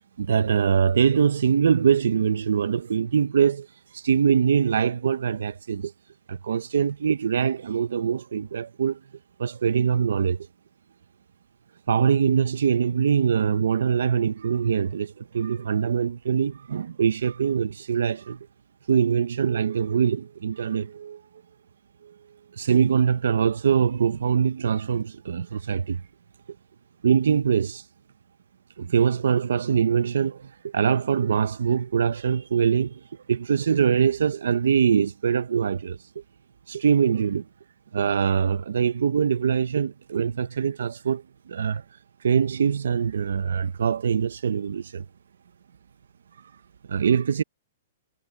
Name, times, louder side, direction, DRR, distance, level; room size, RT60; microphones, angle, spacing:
voice 1, 0.2-3.7 3.9-5.9 6.3-9.0 9.4-10.4 11.9-18.4 18.9-21.2 22.0-22.1 22.6-26.0 27.0-27.8 28.8-33.0 33.3-36.0 36.7-37.4 37.9-41.8 42.2-45.1 46.9-47.4, right 7 dB, 90° right, 0.8 m, -23 dB
hypercardioid pair, 160°, 0 cm